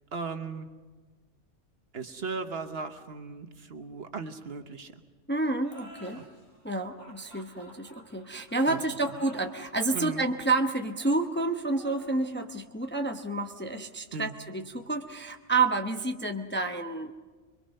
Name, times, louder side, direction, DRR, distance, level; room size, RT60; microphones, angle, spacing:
voice 1, 0.1-0.7 1.9-4.9 6.1-6.2 8.7-8.8 9.9-10.2 14.1-14.3, right 4 dB, 60° right, 7 dB, 1.3 m, -37 dB
voice 2, 5.3-6.2 6.6-17.1, right 3 dB, 10° left, 5 dB, 0.7 m, -29 dB
sound 1, 5.6-14.9, equal, 55° left, 5.3 m, -53 dB
25.0 x 22.5 x 5.4 m, 1.3 s
omnidirectional pair, 1.2 m